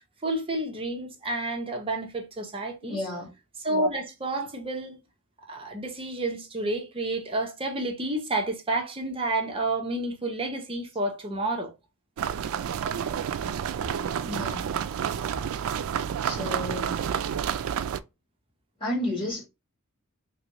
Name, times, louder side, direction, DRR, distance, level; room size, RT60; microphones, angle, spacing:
voice 1, 0.0-3.0 3.6-5.0 5.5-11.7, right 2 dB, 25° right, 0.8 m, -30 dB
voice 2, 2.8-3.3 14.2-14.7 16.2-17.1 18.8-19.4, left 1 dB, 25° left, 2.0 m, -32 dB
sound 1, 12.2-18.0, right 8 dB, 65° right, 0.3 m, -29 dB
3.3 x 2.5 x 2.9 m
head